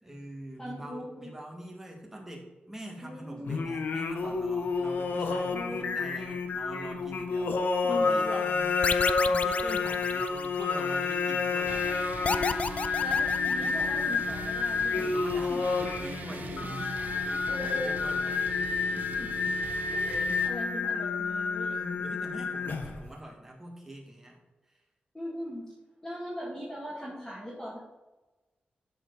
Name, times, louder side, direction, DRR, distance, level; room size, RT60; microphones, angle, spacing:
voice 1, 0.0-7.6 7.9-8.7 9.3-12.1 15.0-18.6 21.7-24.4 24.7-24.8, right 1 dB, 10° right, -1 dB, 1.9 m, -44 dB
voice 2, 0.6-1.3 3.0-3.5 5.5-6.0 7.8-8.5 12.9-15.2 15.5-15.6 17.5-17.9 19.1-19.4 19.9-21.7 25.1-25.7 26.0-27.8, equal, 10° left, -8 dB, 2.2 m, -40 dB
Singing, 3.5-23.1, left 4 dB, 80° left, 0.9 m, -29 dB
sound 1, 8.8-10.8 12.2-14.0, left 4 dB, 40° left, 0.4 m, -31 dB
sound 2, 11.7-20.5, right 4 dB, 60° right, 0.8 m, -42 dB
12.5 x 4.6 x 4.1 m, 1.1 s
wide cardioid pair, 140°, 3 cm